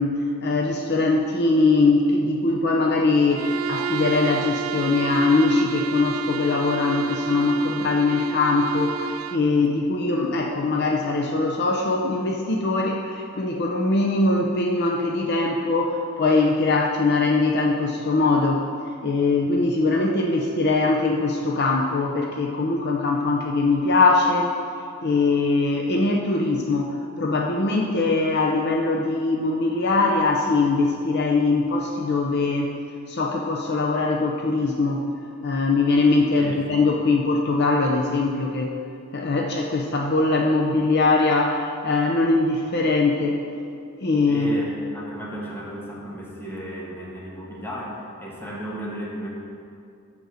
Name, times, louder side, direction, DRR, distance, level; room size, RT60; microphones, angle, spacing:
voice 1, 0.0-18.6 19.0-24.5 25.0-32.7 33.1-35.1 35.4-38.7 39.1-43.4 44.0-44.5, left 3 dB, 50° left, 1 dB, 0.6 m, -21 dB
Bowed string instrument, 3.3-9.5, right 8 dB, 90° right, 0.3 m, -31 dB
voice 2, 44.3-49.3, equal, 10° left, -4 dB, 1.4 m, -34 dB
8.0 x 5.2 x 6.4 m, 2.4 s
head